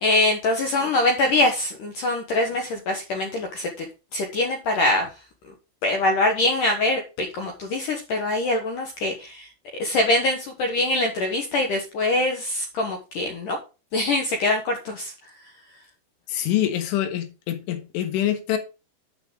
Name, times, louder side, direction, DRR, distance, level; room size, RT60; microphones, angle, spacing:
voice 1, 0.0-3.9 4.1-5.1 5.8-9.5 9.8-13.6 13.9-15.1, left 2 dB, 70° left, 3 dB, 2.1 m, -23 dB
voice 2, 16.3-18.6, left 11 dB, 85° left, 7 dB, 3.9 m, -25 dB
9.1 x 6.9 x 3.8 m, 0.30 s
omnidirectional pair, 5.4 m